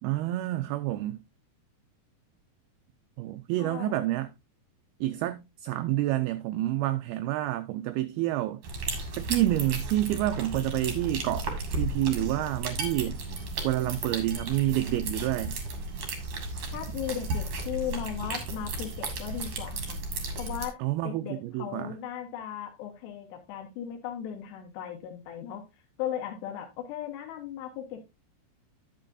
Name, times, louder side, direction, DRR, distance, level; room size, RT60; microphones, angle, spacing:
voice 1, 0.0-1.2 3.2-4.3 5.0-8.6 9.2-11.5 11.8-13.2 13.6-15.6 20.8-22.0, right 15 dB, 85° right, 2.2 m, -28 dB
voice 2, 3.6-4.1 16.7-20.0 20.4-20.8 21.0-25.6 26.0-28.1, left 10 dB, 75° left, 3.7 m, -37 dB
sound 1, 8.6-20.7, right 2 dB, 50° right, 2.5 m, -34 dB
10.5 x 8.2 x 2.6 m
omnidirectional pair, 4.9 m